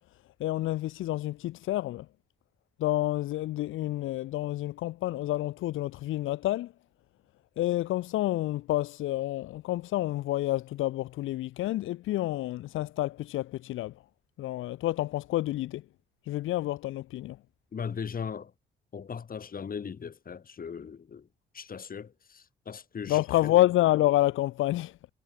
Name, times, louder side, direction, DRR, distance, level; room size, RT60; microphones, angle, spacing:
voice 1, 0.4-2.1 2.8-6.7 7.6-13.9 14.4-15.8 16.3-17.4 23.1-25.0, left 15 dB, 85° left, 1.8 m, -28 dB
voice 2, 17.7-18.5 18.9-21.3 21.5-23.5, left 6 dB, 45° left, 7.7 m, -38 dB
cardioid pair, 90°, 20 cm